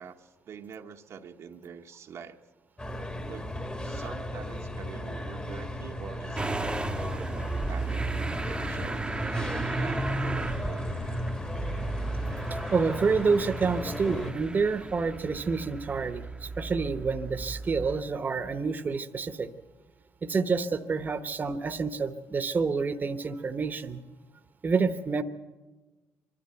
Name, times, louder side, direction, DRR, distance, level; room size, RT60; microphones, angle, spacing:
voice 1, 0.0-2.4 3.2-3.5 3.8-6.5 6.9-8.0 8.3-11.0, right 7 dB, 60° right, 4 dB, 1.0 m, -45 dB
sound 1, 2.8-14.3, left 1 dB, 20° left, 1.5 m, -35 dB
Motor vehicle (road) / Engine starting, 6.4-18.0, right 3 dB, 15° right, 0.9 m, -35 dB
voice 2, 12.5-19.5 20.2-24.0 24.6-25.2, right 4 dB, 35° right, 9 dB, 1.0 m, -28 dB
23.5 x 12.5 x 9.0 m, 1.2 s
cardioid pair, 90°, 5 cm